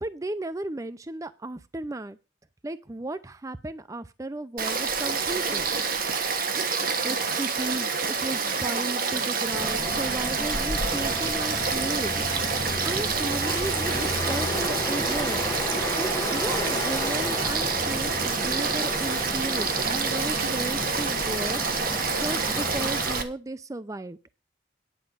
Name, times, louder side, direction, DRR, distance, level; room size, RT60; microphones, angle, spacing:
voice 1, 0.0-2.2 2.6-5.7 7.0-15.4 16.0-24.2, right 2 dB, 20° right, 13 dB, 0.5 m, -35 dB
Frog / Stream, 4.6-23.2, right 5 dB, 55° right, 1.4 m, -28 dB
sound 1, 9.5-23.2, left 1 dB, 20° left, 1.0 m, -33 dB
9.9 x 5.2 x 8.2 m, 0.31 s
head